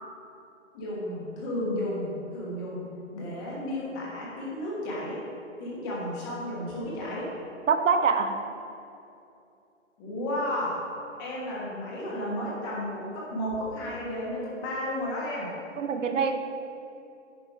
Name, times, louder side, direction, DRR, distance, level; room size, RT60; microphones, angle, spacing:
voice 1, 0.7-2.8 3.1-5.2 5.6-7.3 10.0-10.8 11.2-15.5, left 1 dB, 20° left, -5 dB, 1.5 m, -33 dB
voice 2, 7.7-8.4 15.8-16.4, right 5 dB, 80° right, 7 dB, 0.8 m, -24 dB
9.9 x 5.4 x 4.7 m, 2.7 s
hypercardioid pair, 160°, 37 cm